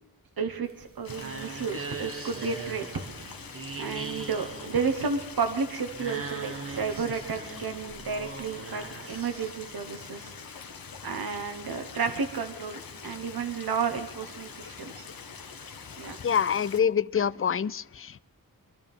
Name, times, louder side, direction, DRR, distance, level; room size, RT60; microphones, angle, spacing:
voice 1, 0.4-2.9 3.8-10.6 11.0-15.1 16.0-16.2, right 5 dB, 70° right, 6 dB, 1.2 m, -32 dB
sound 1, 0.6-9.7, right 4 dB, 35° right, 1.2 m, -41 dB
Stream, 1.1-16.8, left 5 dB, 65° left, 1.0 m, -44 dB
voice 2, 16.2-18.2, left 7 dB, 35° left, 19 dB, 0.4 m, -26 dB
24.5 x 12.5 x 3.6 m, 0.83 s
wide cardioid pair, 70°, 38 cm